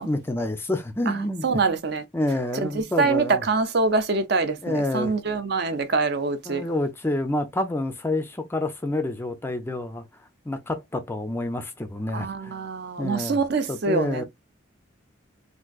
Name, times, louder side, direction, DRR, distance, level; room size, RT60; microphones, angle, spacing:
voice 1, 0.0-1.4 2.1-3.4 4.6-5.1 6.5-10.0 10.5-12.6 13.0-13.4 13.7-14.2, left 1 dB, 10° left, 0.3 m, -28 dB
voice 2, 1.1-2.0 2.5-6.7 12.1-14.2, right 4 dB, 55° right, 0.5 m, -25 dB
3.6 x 2.5 x 2.3 m
head